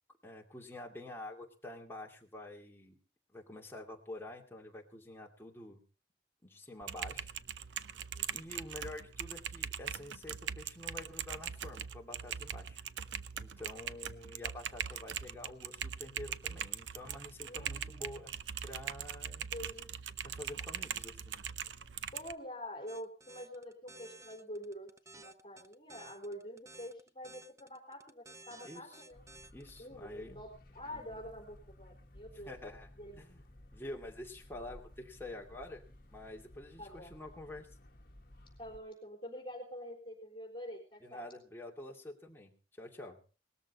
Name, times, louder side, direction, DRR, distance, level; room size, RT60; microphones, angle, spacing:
voice 1, 0.2-3.0 3.3-5.8 6.4-7.3 8.3-12.8 13.4-18.3 18.6-19.5 20.2-21.3 28.6-28.8 29.5-30.4 30.8-31.2 32.5-32.9 33.2-33.4 33.7-35.8 36.1-37.7 41.0-43.2, left 1 dB, 15° left, 0 dB, 2.5 m, -48 dB
Typing, 6.8-22.3, right 8 dB, 90° right, 0.7 m, -41 dB
voice 2, 17.4-18.3 19.4-20.2 22.1-29.2 29.8-32.5 33.0-33.2 36.8-37.1 38.6-41.3, equal, 30° left, 0 dB, 4.0 m, -47 dB
sound 1, 22.9-29.8, right 2 dB, 15° right, 0.7 m, -54 dB
sound 2, 29.1-38.8, left 1 dB, 50° left, 1.7 m, -57 dB
19.5 x 13.5 x 4.2 m, 0.38 s
head